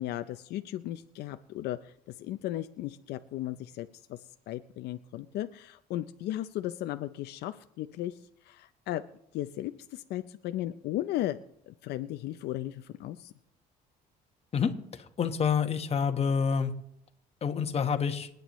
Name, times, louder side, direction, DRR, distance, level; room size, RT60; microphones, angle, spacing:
voice 1, 0.0-1.9 2.2-4.2 4.5-8.2 8.4-9.0 9.3-11.4 11.7-13.3, left 14 dB, 75° left, 10 dB, 0.5 m, -36 dB
voice 2, 15.2-16.7 17.4-18.3, left 6 dB, 35° left, 7 dB, 1.2 m, -27 dB
27.5 x 9.3 x 3.1 m, 0.76 s
cardioid pair, 110°, 17 cm